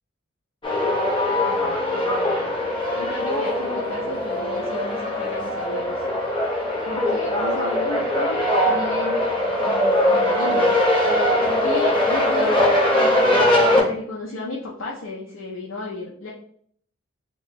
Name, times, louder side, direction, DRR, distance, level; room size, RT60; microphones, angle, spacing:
sound 1, 0.6-13.8, left 1 dB, 25° left, 0.8 m, -21 dB
voice 1, 1.5-6.0 6.9-9.2 9.6-10.7 11.6-12.6 12.9-16.3, left 2 dB, 80° left, -5 dB, 0.6 m, -33 dB
2.9 x 2.3 x 4.0 m, 0.63 s
head